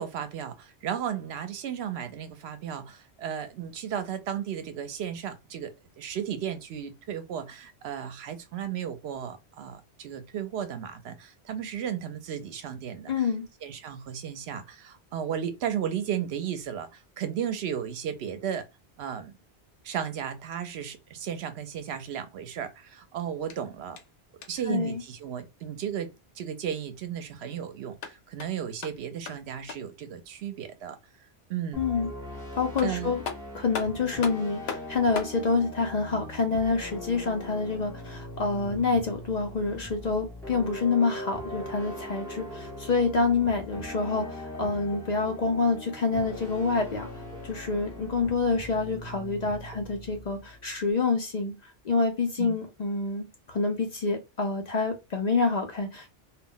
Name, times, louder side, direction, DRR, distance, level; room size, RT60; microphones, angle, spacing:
voice 1, 0.0-13.2 13.6-18.7 19.0-19.3 19.8-24.0 24.5-26.1 26.4-31.0 31.5-31.8 32.8-33.1 52.4-52.5, right 9 dB, 75° right, 0.8 m, -34 dB
voice 2, 13.1-13.5 24.7-25.0 31.7-32.1 32.5-33.2 33.5-51.5 51.8-56.1, left 4 dB, 55° left, 0.5 m, -27 dB
sound 1, 23.5-24.8 27.8-30.0 32.3-32.4 32.8-35.4, left 5 dB, 75° left, 0.8 m, -39 dB
sound 2, 31.7-50.9, left 1 dB, 5° left, 0.8 m, -41 dB
2.2 x 2.1 x 3.7 m
omnidirectional pair, 1.1 m